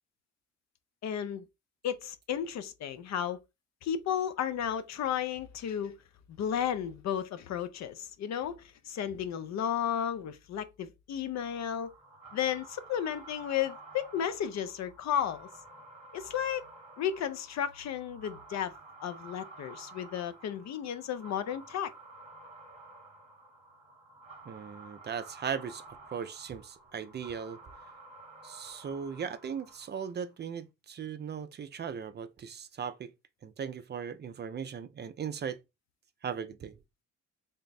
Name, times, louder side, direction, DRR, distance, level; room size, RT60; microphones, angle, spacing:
voice 1, 1.0-1.5 1.8-3.4 3.8-6.0 6.4-11.9 12.3-15.5 16.1-16.7 17.0-18.7 19.0-21.9, left 9 dB, 60° left, 0.6 m, -33 dB
sound 1, 11.3-30.2, right 3 dB, 20° right, 1.0 m, -52 dB
voice 2, 24.5-25.8 26.1-27.6 28.4-33.1 33.4-35.6 36.2-36.7, right 7 dB, 35° right, 0.4 m, -38 dB
3.4 x 2.1 x 4.0 m
cardioid pair, 90°, 30 cm